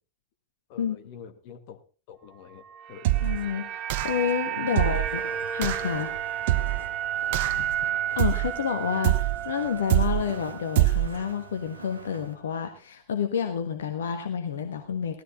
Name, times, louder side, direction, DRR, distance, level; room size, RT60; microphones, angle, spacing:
voice 1, 0.7-1.8 2.1-2.6 2.9-3.1 4.7-5.0 7.3-7.7, left 8 dB, 45° left, 7 dB, 2.0 m, -46 dB
sound 1, 2.6-10.9 11.2-11.4, right 10 dB, 35° right, 1.0 m, -32 dB
sound 2, 3.0-3.5 3.9-4.3 4.8-5.2 5.6-5.9 6.5-6.9 7.3-7.7 8.2-8.6 9.0-9.5 9.9-10.3 10.8-11.2, right 15 dB, 50° right, 0.7 m, -24 dB
voice 2, 3.2-6.1 8.2-15.2, left 7 dB, 65° left, 7 dB, 1.4 m, -29 dB
Walk footsteps, 4.7-12.4, right 3 dB, 80° right, 1.8 m, -44 dB
17.0 x 13.5 x 3.7 m, 0.34 s
figure-of-eight pair, 90°, 0 cm